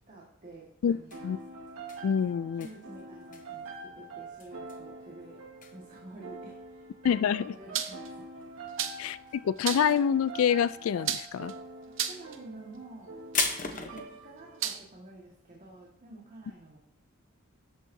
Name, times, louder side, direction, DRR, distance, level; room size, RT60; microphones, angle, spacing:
voice 1, 0.1-1.3 2.2-5.4 5.7-6.9 7.5-8.2 11.9-13.2 13.6-16.8, right 2 dB, 40° right, -4 dB, 1.8 m, -49 dB
sound 1, 0.9-8.9 9.2-9.8 10.1-14.0, left 6 dB, 40° left, 0.9 m, -38 dB
sound 2, 1.1-14.8, right 2 dB, 85° right, 1.6 m, -45 dB
voice 2, 2.0-2.7 7.0-7.6 9.0-11.5, left 8 dB, 75° left, 17 dB, 0.3 m, -26 dB
sound 3, 7.7-8.1 8.8-9.1 9.6-10.0 11.0-11.5 12.0-12.4 13.4-13.7 14.6-14.8, right 9 dB, 65° right, 0.7 m, -32 dB
12.0 x 7.3 x 2.7 m, 0.70 s
head